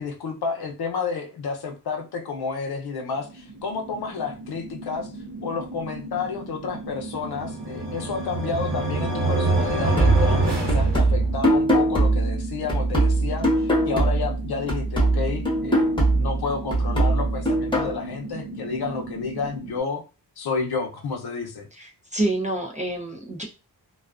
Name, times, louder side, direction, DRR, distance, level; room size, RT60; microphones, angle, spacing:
voice 1, 0.0-5.1 5.4-20.0 20.4-21.7, left 5 dB, 70° left, 4 dB, 0.6 m, -30 dB
sound 1, 3.1-19.8, right 1 dB, 85° right, 0.6 m, -37 dB
sound 2, 7.3-11.6, right 2 dB, 65° right, 1.0 m, -25 dB
sound 3, 10.0-14.4 14.7-18.0, right 2 dB, 10° left, 0.8 m, -21 dB
voice 2, 21.7-23.4, right 2 dB, 20° right, 1 dB, 0.4 m, -28 dB
2.3 x 2.3 x 2.3 m, 0.31 s
wide cardioid pair, 130°, 40 cm